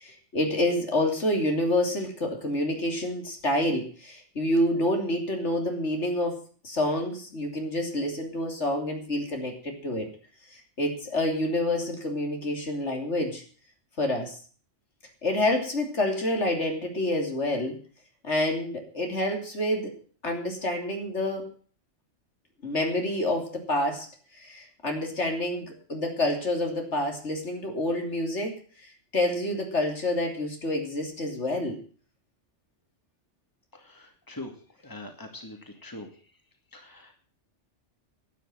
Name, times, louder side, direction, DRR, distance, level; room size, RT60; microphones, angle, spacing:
voice 1, 0.0-6.4 6.6-10.1 10.5-13.4 14.0-14.4 15.2-17.8 18.2-19.9 20.2-21.4 22.6-24.1 24.4-28.5 29.1-31.8, left 1 dB, 70° left, 3 dB, 3.4 m, -28 dB
voice 2, 33.9-34.5 34.8-36.1 36.7-37.1, left 2 dB, 15° left, 4 dB, 2.5 m, -42 dB
11.5 x 9.5 x 9.0 m, 0.42 s
omnidirectional pair, 1.2 m